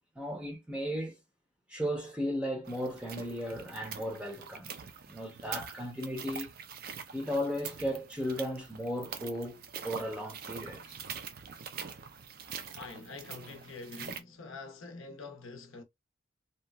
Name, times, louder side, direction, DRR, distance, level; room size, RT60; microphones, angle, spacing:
voice 1, 0.2-1.2 1.7-4.7 5.1-6.5 7.1-11.0, equal, 5° right, 0.6 m, -35 dB
sound 1, 2.6-14.2, right 7 dB, 45° right, 0.4 m, -44 dB
voice 2, 12.8-15.8, left 3 dB, 75° left, 0.6 m, -45 dB
2.8 x 2.2 x 2.2 m
head